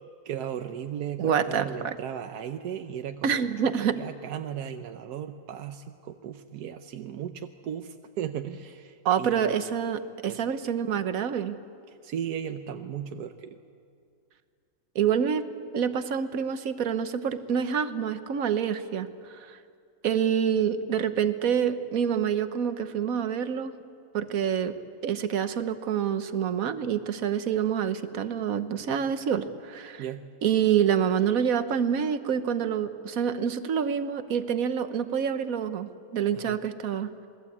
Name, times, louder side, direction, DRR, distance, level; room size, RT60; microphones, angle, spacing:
voice 1, 0.0-9.6 10.3-10.4 11.9-13.6 30.0-30.3 36.3-36.6, right 9 dB, 90° right, 7 dB, 1.4 m, -36 dB
voice 2, 1.2-2.0 3.2-4.0 9.0-11.6 14.9-19.1 19.5-19.6 20.0-23.7 24.1-24.7 25.0-30.0 30.4-37.3, right 8 dB, 65° right, 11 dB, 1.4 m, -27 dB
27.0 x 20.0 x 8.5 m, 2.4 s
omnidirectional pair, 1.6 m